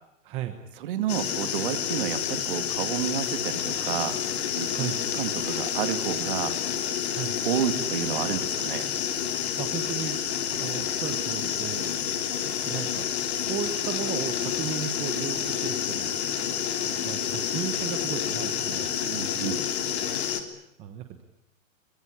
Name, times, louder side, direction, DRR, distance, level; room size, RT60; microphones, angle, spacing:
voice 1, 0.2-0.6 4.7-5.0 7.1-7.4 9.3-10.2 10.5-12.0 12.6-16.1 16.8-19.1 19.4-21.2, right 10 dB, 15° right, 7 dB, 1.1 m, -36 dB
voice 2, 0.8-4.2 4.5-6.6 7.4-8.9 19.0-19.6, right 10 dB, 40° right, 10 dB, 2.4 m, -30 dB
sound 1, 1.1-20.4, left 9 dB, 50° left, 3.4 m, -29 dB
23.5 x 22.5 x 10.0 m, 0.80 s
hypercardioid pair, 175°, 40 cm